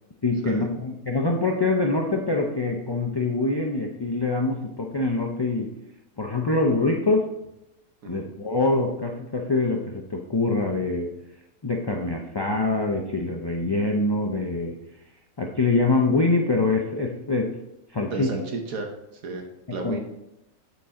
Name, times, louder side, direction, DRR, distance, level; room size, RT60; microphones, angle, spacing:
voice 1, 0.2-5.7 6.2-7.3 8.1-11.1 11.6-14.8 15.4-17.5 17.9-18.3 19.8-20.0, left 3 dB, 30° left, 0 dB, 0.4 m, -24 dB
voice 2, 18.1-19.4 19.7-20.1, right 3 dB, 75° right, 3 dB, 1.4 m, -33 dB
8.1 x 7.1 x 3.7 m, 0.88 s
omnidirectional pair, 1.5 m